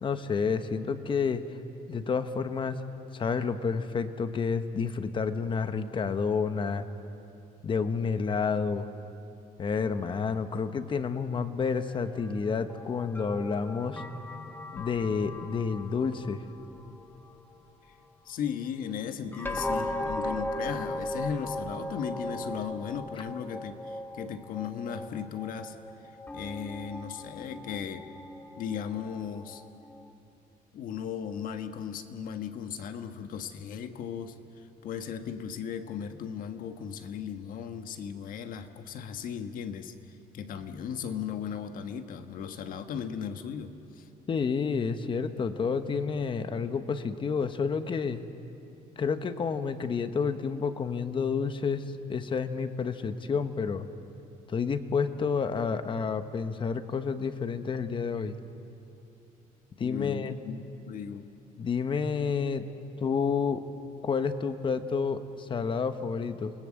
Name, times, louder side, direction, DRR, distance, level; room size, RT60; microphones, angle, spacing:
voice 1, 0.0-1.4 1.9-2.8 3.1-6.8 7.6-8.9 9.6-14.0 14.7-16.4 44.3-48.2 49.0-53.9 54.5-58.4 59.8-60.4 61.6-62.6 63.0-63.6 64.0-66.5, left 5 dB, 35° left, 10 dB, 1.2 m, -29 dB
sound 1, 11.9-17.5 19.3-30.1, left 1 dB, 15° left, 1.3 m, -38 dB
voice 2, 18.2-25.7 26.3-28.1 28.6-29.6 30.7-39.9 40.3-44.1 59.8-61.3, left 7 dB, 65° left, 7 dB, 1.5 m, -36 dB
28.5 x 20.0 x 7.7 m, 2.8 s
cardioid pair, 130°, 15 cm